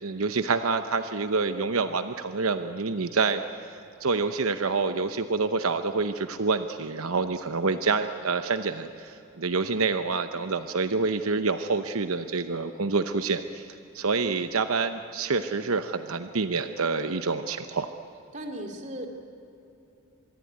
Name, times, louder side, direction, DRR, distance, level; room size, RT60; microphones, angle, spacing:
voice 1, 0.0-13.6 13.9-17.9, right 4 dB, 80° right, 9 dB, 0.9 m, -27 dB
voice 2, 18.3-19.1, right 1 dB, 35° right, 5 dB, 2.8 m, -36 dB
25.5 x 22.0 x 9.5 m, 2.8 s
head